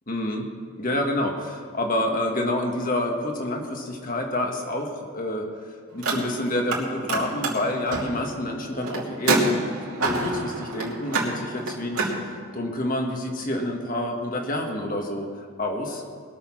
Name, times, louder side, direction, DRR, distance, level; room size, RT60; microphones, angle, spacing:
voice 1, 0.1-0.5 0.8-12.1 12.5-16.0, left 1 dB, 40° left, 2 dB, 1.7 m, -28 dB
Car, 5.9-6.8 7.1-12.2, right 2 dB, 80° right, 2.7 m, -27 dB
20.5 x 7.1 x 5.9 m, 2.2 s
head